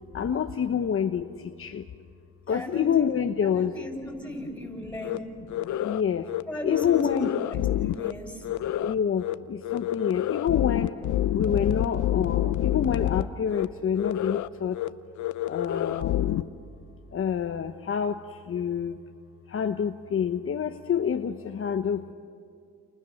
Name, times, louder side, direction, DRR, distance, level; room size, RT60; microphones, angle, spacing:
voice 1, 0.1-1.2 1.6-1.8 2.5-3.7 5.8-6.2 6.6-7.3 8.8-9.2 9.7-10.9 11.3-14.7 15.5-16.4 17.1-18.1 18.5-18.9 19.5-21.3 21.6-22.1, left 8 dB, 45° left, 6 dB, 1.1 m, -27 dB
voice 2, 2.5-3.0 3.4-5.3 6.5-8.5, equal, 5° left, 2 dB, 7.6 m, -36 dB
sound 1, 5.0-5.2 5.5-6.0 6.3-6.4 6.7-8.1 8.4-8.9 9.2-9.3 9.6-13.2 13.5-13.7 14.0-14.5 14.7-14.9 15.2-16.4, left 13 dB, 75° left, 0.8 m, -28 dB
30.0 x 30.0 x 6.5 m, 2.4 s
cardioid pair, 90°, 30 cm